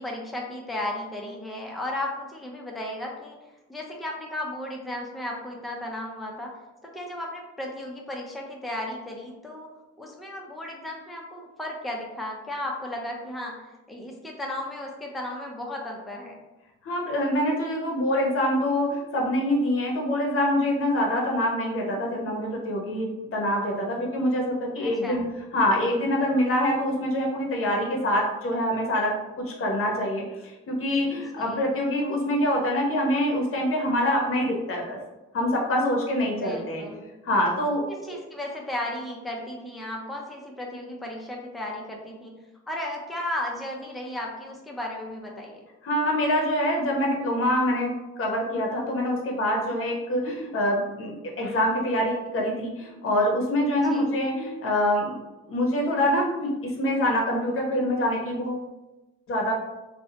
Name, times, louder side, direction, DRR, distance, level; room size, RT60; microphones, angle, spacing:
voice 1, 0.0-3.4 3.7-6.5 6.8-9.7 10.0-16.4 24.8-25.2 31.0-31.7 36.2-37.1 38.0-42.4 42.7-45.6 53.8-54.1, left 1 dB, ahead, -1 dB, 0.4 m, -35 dB
voice 2, 16.8-25.2 25.5-35.0 35.3-36.8 37.2-37.8 45.8-47.9 48.2-55.2 55.5-58.6 59.3-59.5, left 1 dB, 45° left, -1 dB, 0.8 m, -25 dB
2.6 x 2.1 x 2.7 m, 1.0 s
cardioid pair, 90°, 30 cm